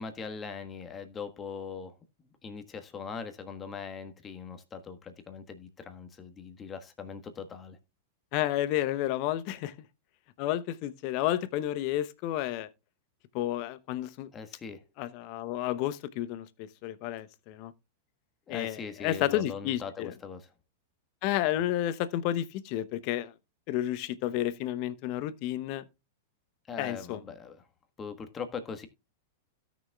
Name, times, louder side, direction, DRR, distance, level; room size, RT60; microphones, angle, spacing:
voice 1, 0.0-7.8 14.3-14.8 18.5-20.5 26.7-27.6 28.0-28.9, left 5 dB, 25° left, 1.4 m, -41 dB
voice 2, 8.3-9.7 10.4-12.7 13.3-14.3 15.0-17.7 18.5-20.1 21.2-23.3 23.7-25.8 26.8-27.2, left 13 dB, 50° left, 0.8 m, -31 dB
16.5 x 6.1 x 2.3 m
figure-of-eight pair, 100°, 0 cm